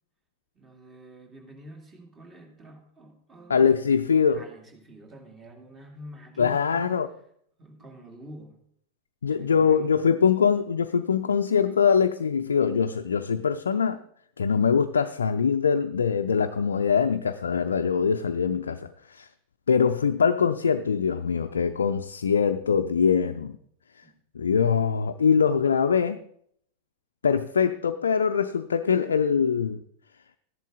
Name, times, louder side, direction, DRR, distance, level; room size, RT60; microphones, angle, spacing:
voice 1, 0.5-3.7 4.3-6.9 7.6-8.6 9.3-10.0 24.0-24.1, right 1 dB, 20° right, 3 dB, 2.6 m, -46 dB
voice 2, 3.5-4.4 6.4-7.1 9.2-14.0 14.4-19.3 19.7-23.5 24.4-26.2 27.2-29.8, left 6 dB, 70° left, 7 dB, 0.5 m, -23 dB
14.0 x 11.0 x 4.0 m, 0.68 s
figure-of-eight pair, 90°, 0 cm